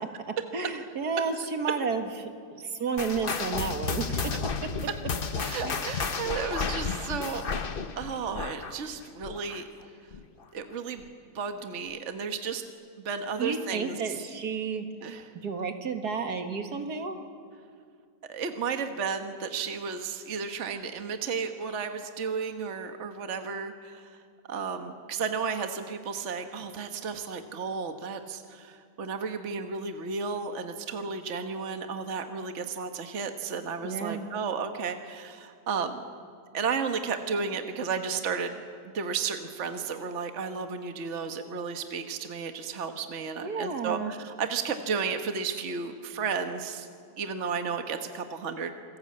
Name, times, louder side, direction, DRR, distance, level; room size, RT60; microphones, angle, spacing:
voice 1, 0.5-2.3 2.6-4.2 5.6-5.9 13.4-14.9 15.4-17.2 33.8-34.3 43.4-44.1, right 5 dB, 70° right, 6 dB, 2.2 m, -31 dB
sound 1, 3.0-9.8 10.1-10.4 11.0-11.1 11.9-12.0, left 5 dB, 40° left, 1.0 m, -32 dB
voice 2, 5.3-7.5 8.0-9.7 10.5-11.0 11.3-12.6 13.0-14.2 15.0-15.3 18.3-24.1 24.5-36.0 36.5-38.6 38.8-46.9 47.2-48.8, right 5 dB, 50° right, 6 dB, 1.5 m, -33 dB
27.5 x 19.5 x 8.7 m, 2.2 s
omnidirectional pair, 1.7 m